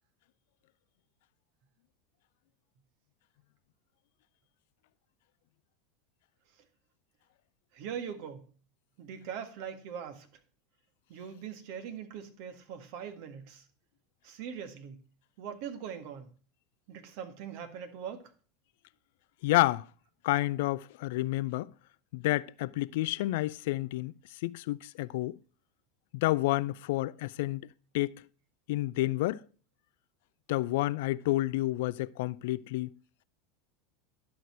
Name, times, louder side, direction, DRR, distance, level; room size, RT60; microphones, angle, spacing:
voice 1, 7.7-8.4 9.0-10.3 11.1-13.6 14.2-15.0 15.4-16.3 16.9-18.2, right 8 dB, 60° right, 1.7 m, -41 dB
voice 2, 19.4-19.8 20.2-21.7 22.1-24.1 24.4-25.4 26.1-27.6 27.9-28.2 28.7-29.4 30.5-32.9, left 18 dB, 65° left, 0.4 m, -29 dB
11.5 x 6.4 x 4.4 m
hypercardioid pair, 85°, 0 cm